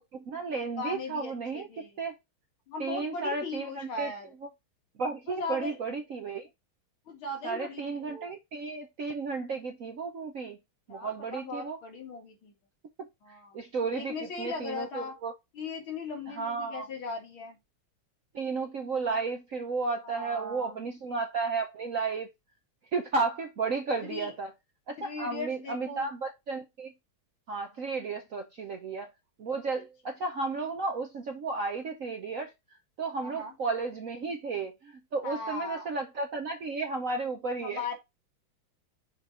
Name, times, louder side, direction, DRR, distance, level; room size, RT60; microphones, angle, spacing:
voice 1, 0.1-2.1 2.8-4.1 5.0-6.5 7.4-10.6 10.9-11.8 13.0-13.1 13.5-15.3 16.3-16.9 18.3-22.3 22.9-24.5 24.9-26.9 27.5-29.1 29.4-32.5 33.0-37.8, right 4 dB, 60° right, 0.9 m, -33 dB
voice 2, 0.8-2.0 2.7-4.3 5.3-5.8 7.1-8.3 10.9-12.5 13.2-13.6 13.9-15.2 15.5-17.6 20.0-20.9 24.0-24.3 25.0-26.1 33.2-33.6 35.2-35.9 37.6-38.0, left 3 dB, 75° left, 2.7 m, -38 dB
6.5 x 3.8 x 4.1 m
omnidirectional pair, 2.3 m